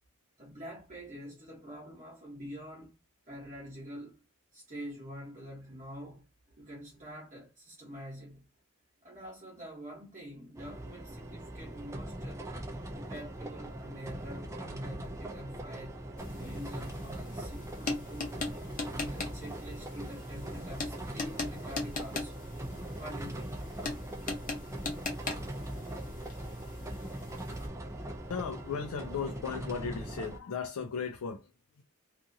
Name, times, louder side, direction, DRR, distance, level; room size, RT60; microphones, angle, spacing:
voice 1, 0.4-2.9 3.3-4.2 4.5-8.4 9.0-12.4 12.9-16.0 16.3-18.5 18.9-22.4 23.0-23.6, equal, 35° right, 1.0 m, -46 dB
sound 1, 10.5-30.4, right 1 dB, 15° right, 0.3 m, -41 dB
sound 2, 16.2-27.7, left 3 dB, 40° left, 0.7 m, -40 dB
voice 2, 28.3-31.8, left 6 dB, 85° left, 0.4 m, -36 dB
2.6 x 2.4 x 2.6 m
head